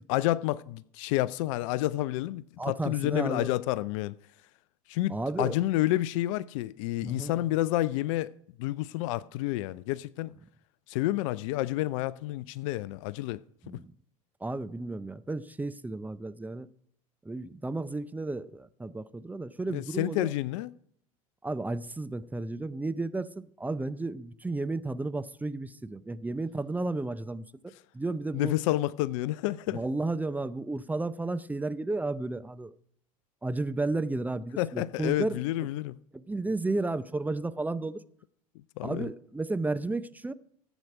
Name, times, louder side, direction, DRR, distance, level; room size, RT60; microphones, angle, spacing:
voice 1, 0.1-4.1 4.9-8.3 8.6-10.3 10.9-13.4 19.7-20.7 28.3-29.8 34.6-36.0 38.8-39.1, left 16 dB, 60° left, 0.5 m, -29 dB
voice 2, 2.6-3.5 5.1-5.6 7.0-7.4 13.6-13.9 14.4-16.7 17.2-20.3 21.4-28.5 29.7-32.7 33.4-35.4 36.1-38.0 38.8-40.3, right 2 dB, 10° right, 0.5 m, -33 dB
14.5 x 8.1 x 4.9 m
hypercardioid pair, 75°, 19 cm